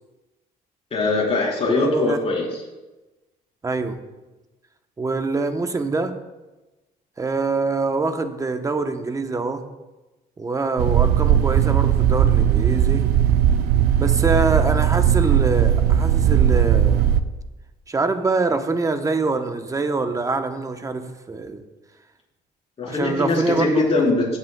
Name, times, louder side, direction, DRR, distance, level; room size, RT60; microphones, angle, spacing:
voice 1, 0.9-2.5 22.8-24.4, left 3 dB, 35° left, -3 dB, 3.7 m, -21 dB
voice 2, 1.7-2.2 3.6-4.0 5.0-6.1 7.2-9.7 10.4-13.1 14.0-17.1 17.9-21.6 22.9-23.9 24.3-24.4, right 3 dB, 20° right, 8 dB, 0.8 m, -24 dB
sound 1, 10.8-17.2, right 10 dB, 75° right, 0.6 m, -18 dB
17.0 x 8.5 x 2.2 m, 1.1 s
cardioid pair, 110°, 17 cm